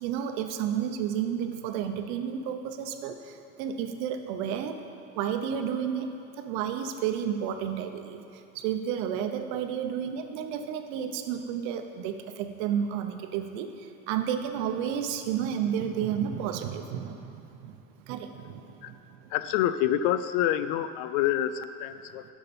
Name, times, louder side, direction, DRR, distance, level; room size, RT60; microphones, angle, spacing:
voice 1, 0.0-3.2 3.6-4.8 5.2-6.1 6.4-8.2 8.5-13.7 14.1-17.7 18.1-19.0, right 8 dB, 70° right, 7 dB, 0.8 m, -31 dB
voice 2, 19.3-22.2, left 11 dB, 80° left, 13 dB, 0.5 m, -27 dB
12.0 x 5.9 x 4.2 m, 2.5 s
cardioid pair, 180°, 38 cm